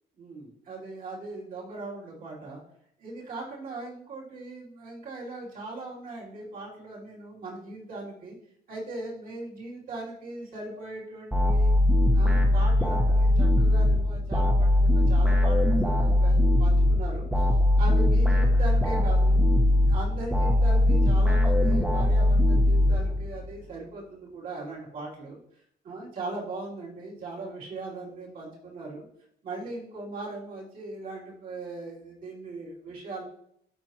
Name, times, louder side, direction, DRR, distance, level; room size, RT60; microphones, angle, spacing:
voice 1, 0.2-2.6 3.0-8.3 8.7-11.7 12.1-17.5 17.8-19.4 19.8-25.4 25.8-29.0 29.4-33.2, right 2 dB, 55° right, -4 dB, 3.0 m, -39 dB
sound 1, 11.3-23.5, left 1 dB, 5° right, 1.1 m, -21 dB
11.5 x 4.3 x 2.9 m, 0.69 s
cardioid pair, 110°, 17 cm